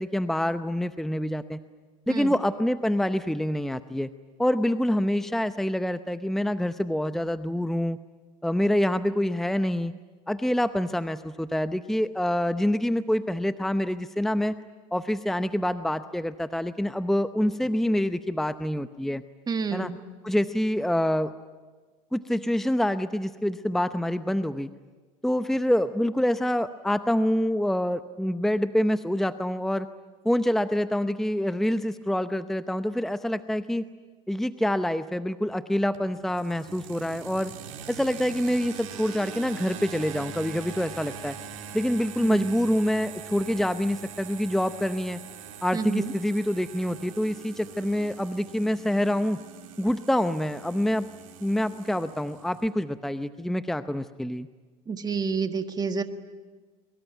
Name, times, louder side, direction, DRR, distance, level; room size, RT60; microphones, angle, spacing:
voice 1, 0.0-1.6 2.1-4.1 4.4-8.0 8.4-9.9 10.3-14.6 14.9-19.2 19.7-19.9 20.2-21.3 22.1-24.7 25.2-29.9 30.2-33.8 34.3-37.5 37.9-41.4 41.7-45.2 45.6-49.4 49.8-51.1 51.4-54.5, left 1 dB, ahead, 11 dB, 0.7 m, -26 dB
voice 2, 19.5-20.0 42.2-42.7 45.7-46.1 54.9-56.0, right 5 dB, 25° right, 8 dB, 1.6 m, -29 dB
sound 1, 35.9-52.7, right 7 dB, 80° right, 4.0 m, -43 dB
23.5 x 22.5 x 9.2 m, 1.4 s
supercardioid pair, 90°, 17 cm